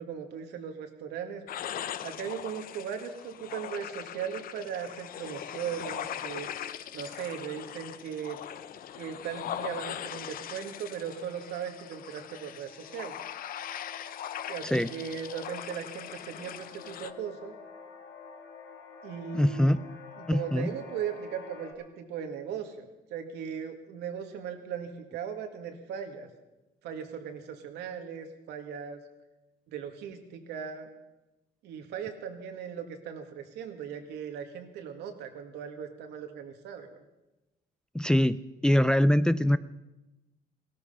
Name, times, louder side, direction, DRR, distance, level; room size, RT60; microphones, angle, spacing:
voice 1, 0.0-1.4 2.0-6.5 6.9-8.4 9.0-13.2 14.5-17.5 19.0-19.8 20.2-26.3 26.8-29.0 29.7-30.9 31.6-37.0, right 8 dB, 85° right, 5 dB, 2.0 m, -38 dB
sound 1, 1.5-17.1, left 10 dB, 60° left, 0.8 m, -40 dB
sound 2, 4.0-21.7, left 5 dB, 85° left, 3.8 m, -51 dB
voice 2, 19.3-19.8 20.3-20.7 37.9-39.6, left 1 dB, 5° left, 14 dB, 0.4 m, -23 dB
17.0 x 13.0 x 5.6 m, 1.0 s
cardioid pair, 110°, 17 cm